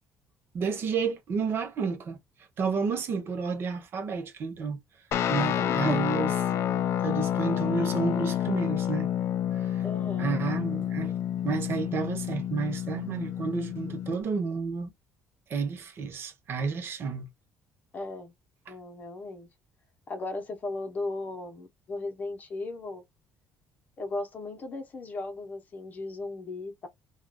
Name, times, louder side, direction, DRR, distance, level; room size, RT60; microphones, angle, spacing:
voice 1, 0.5-2.2 2.6-4.8 5.3-6.6 7.0-9.1 9.5-9.8 10.2-11.1 11.4-14.9 15.5-17.3 18.7-18.8, right 5 dB, 45° right, 0.9 m, -31 dB
Guitar, 5.1-14.2, left 10 dB, 55° left, 0.4 m, -29 dB
voice 2, 5.6-6.0 9.8-10.4 17.9-18.3 18.7-19.5 20.1-23.0 24.0-26.9, left 2 dB, 30° left, 0.8 m, -36 dB
3.7 x 2.3 x 2.2 m
cardioid pair, 155°, 6 cm